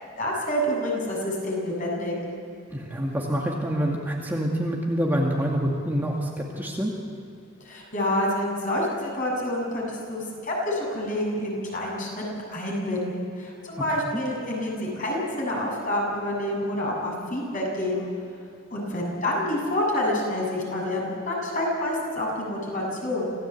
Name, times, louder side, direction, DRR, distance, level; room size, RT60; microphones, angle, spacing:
voice 1, 0.2-2.1 7.6-18.1 18.7-23.3, left 1 dB, 40° left, -2 dB, 7.4 m, -28 dB
voice 2, 2.7-6.9 14.1-14.2, equal, 10° right, -2 dB, 2.1 m, -26 dB
26.5 x 17.0 x 8.4 m, 2.6 s
head